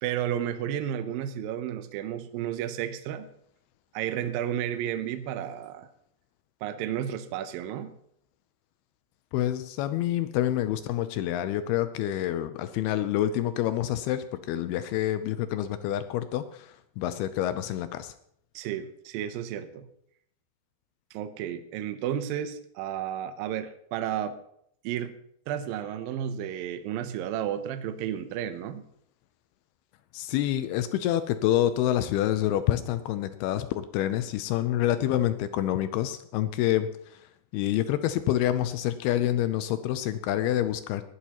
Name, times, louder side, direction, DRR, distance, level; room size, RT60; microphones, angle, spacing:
voice 1, 0.0-3.3 3.9-5.9 6.6-8.0 18.5-19.9 21.1-24.4 24.8-25.2 25.5-28.8, right 10 dB, 80° right, 10 dB, 2.1 m, -32 dB
voice 2, 9.3-18.1 30.1-37.2 37.5-41.0, left 12 dB, 80° left, 11 dB, 2.4 m, -27 dB
19.5 x 11.0 x 2.9 m, 0.69 s
omnidirectional pair, 4.9 m